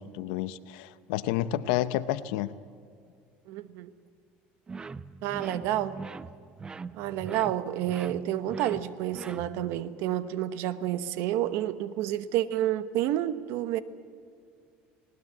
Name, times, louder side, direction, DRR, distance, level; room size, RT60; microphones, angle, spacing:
voice 1, 0.0-2.5, left 13 dB, 85° left, 14 dB, 0.8 m, -30 dB
voice 2, 3.5-3.9 5.2-6.0 6.9-13.8, right 12 dB, 70° right, 13 dB, 1.1 m, -29 dB
sound 1, 4.7-9.8, right 4 dB, 20° right, 0.5 m, -42 dB
20.0 x 19.0 x 8.2 m, 2.3 s
cardioid pair, 130°, 4 cm